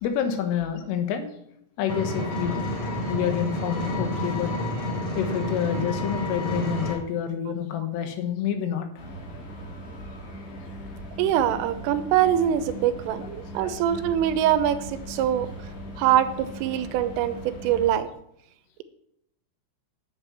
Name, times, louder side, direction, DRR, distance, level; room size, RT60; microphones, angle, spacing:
voice 1, 0.0-1.3 1.8-2.6 3.1-4.5 5.2-8.9 13.6-13.8, left 9 dB, 80° left, 7 dB, 3.9 m, -28 dB
Engine, 1.9-6.9, left 1 dB, 35° left, 3.5 m, -29 dB
sound 1, 9.0-17.9, right 1 dB, 55° left, 4.9 m, -39 dB
voice 2, 11.2-15.5 16.0-18.1, right 11 dB, 90° right, 11 dB, 3.4 m, -23 dB
11.0 x 7.5 x 8.9 m, 0.74 s
omnidirectional pair, 5.9 m